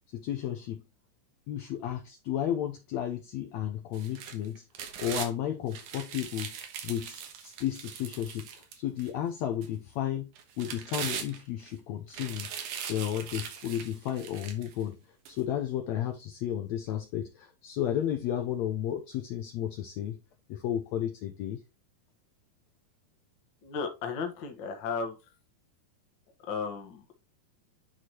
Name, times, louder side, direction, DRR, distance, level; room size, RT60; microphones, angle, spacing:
voice 1, 0.1-0.8 1.5-4.6 5.0-6.5 6.8-10.3 10.6-12.5 12.9-15.0 15.3-20.2 20.5-21.6, left 10 dB, 75° left, 1.7 m, -33 dB
sound 1, 3.9-5.3 5.7-9.1 9.6-9.7 10.4-11.7 12.1-14.7 15.3-15.4, right 8 dB, 70° right, 2.6 m, -40 dB
voice 2, 23.6-25.2 26.5-27.2, left 5 dB, 50° left, 1.4 m, -34 dB
10.0 x 4.8 x 2.9 m
omnidirectional pair, 3.8 m